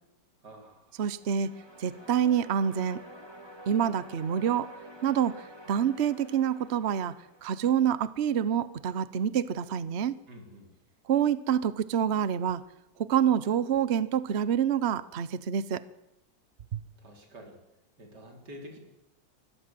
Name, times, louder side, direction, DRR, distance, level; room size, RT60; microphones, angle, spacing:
voice 1, 0.4-0.9 10.3-10.7 17.0-17.6 18.0-18.8, equal, 65° right, 2 dB, 4.9 m, -48 dB
sound 1, 1.0-8.1, equal, 15° right, 2.8 m, -49 dB
voice 2, 1.0-1.5 1.8-3.0 3.7-4.7 5.0-5.4 5.7-7.1 7.4-10.2 11.1-12.6 13.0-15.8 16.7-16.8, right 8 dB, 45° right, 16 dB, 1.0 m, -27 dB
24.5 x 20.5 x 7.7 m, 0.94 s
omnidirectional pair, 2.0 m